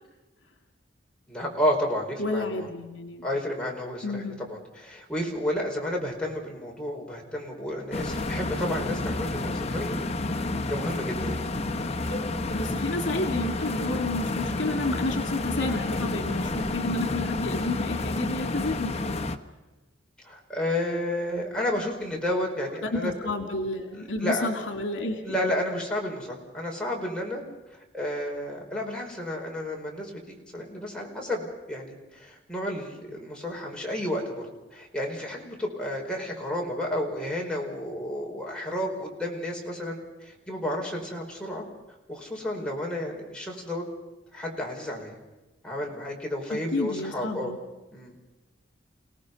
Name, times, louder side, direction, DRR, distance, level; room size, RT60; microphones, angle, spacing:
voice 1, 1.3-2.7 3.2-10.0 10.7-11.5 20.2-23.1 23.9-24.5 25.2-27.4 27.9-41.6 42.1-43.9 44.3-45.2 45.6-47.5 47.9-48.1, left 1 dB, 5° left, -2 dB, 4.9 m, -31 dB
voice 2, 2.2-3.3 4.0-4.4 12.1-12.2 12.5-19.0 22.8-25.4 46.5-47.6, left 2 dB, 80° left, 4 dB, 2.4 m, -30 dB
sound 1, 7.9-19.4, left 2 dB, 35° left, 1.1 m, -30 dB
29.5 x 18.0 x 5.5 m, 1.1 s
head